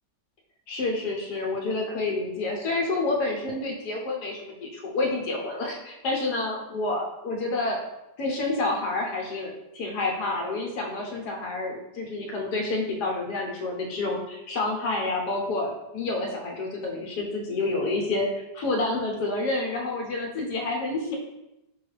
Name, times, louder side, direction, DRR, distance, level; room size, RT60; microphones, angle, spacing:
voice 1, 0.7-7.8 8.2-21.2, left 2 dB, 70° left, 0 dB, 1.3 m, -29 dB
4.8 x 2.3 x 3.1 m, 0.89 s
omnidirectional pair, 1.8 m